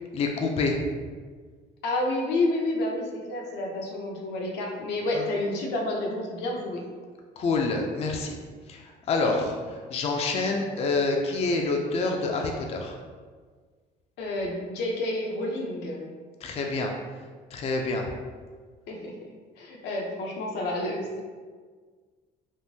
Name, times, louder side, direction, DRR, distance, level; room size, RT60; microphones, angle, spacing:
voice 1, 0.1-0.7 5.2-5.3 7.4-8.3 8.7-8.8 9.1-9.6 9.9-12.9 16.4-16.9 17.5-18.0, left 3 dB, 40° left, 2 dB, 0.4 m, -27 dB
voice 2, 1.8-6.8 14.2-16.1 18.9-19.1 19.6-21.2, left 2 dB, 85° left, 0 dB, 0.7 m, -29 dB
3.6 x 2.5 x 2.7 m, 1.6 s
cardioid pair, 110°, 17 cm